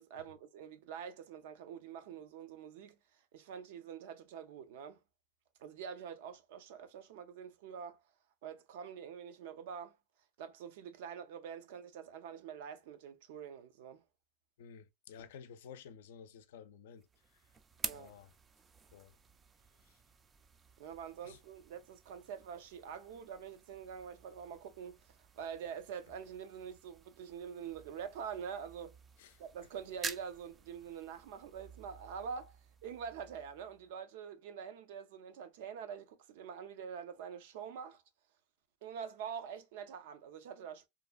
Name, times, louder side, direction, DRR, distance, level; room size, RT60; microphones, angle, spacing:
voice 1, 0.0-3.0 3.3-5.0 5.6-8.0 8.4-10.0 10.4-14.0 17.8-18.1 20.8-25.0 25.3-28.9 29.4-32.6 32.8-38.0 38.8-40.9, right 7 dB, 75° right, 0.5 m, -45 dB
voice 2, 14.6-17.1 17.3-17.4 17.9-18.3 18.9-19.2 19.8-20.0 21.2-21.4 29.2-29.4, left 7 dB, 85° left, 0.4 m, -53 dB
sound 1, 17.0-33.9, right 5 dB, 20° right, 0.3 m, -50 dB
2.8 x 2.2 x 2.4 m
supercardioid pair, 125°, 0 cm